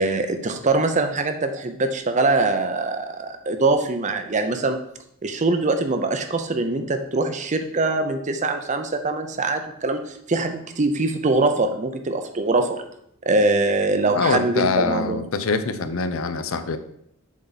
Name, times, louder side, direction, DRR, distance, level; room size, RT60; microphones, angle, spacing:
voice 1, 0.0-4.8 5.2-12.8 13.3-15.2, right 3 dB, 35° right, 7 dB, 0.6 m, -23 dB
voice 2, 14.1-16.8, left 4 dB, 70° left, 10 dB, 0.5 m, -24 dB
7.2 x 4.1 x 4.0 m, 0.72 s
head